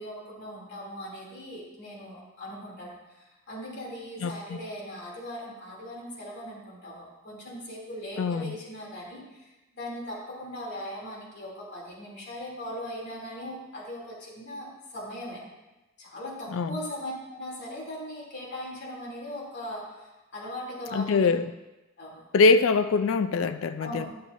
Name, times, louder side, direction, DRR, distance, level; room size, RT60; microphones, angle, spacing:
voice 1, 0.0-15.4 16.0-21.3 22.0-22.2 23.8-24.1, equal, 60° left, -5 dB, 2.7 m, -39 dB
voice 2, 4.2-4.6 8.2-8.5 16.5-16.8 20.9-21.5 22.3-24.1, left 4 dB, 75° left, 9 dB, 0.4 m, -23 dB
11.5 x 6.6 x 2.6 m, 1.0 s
head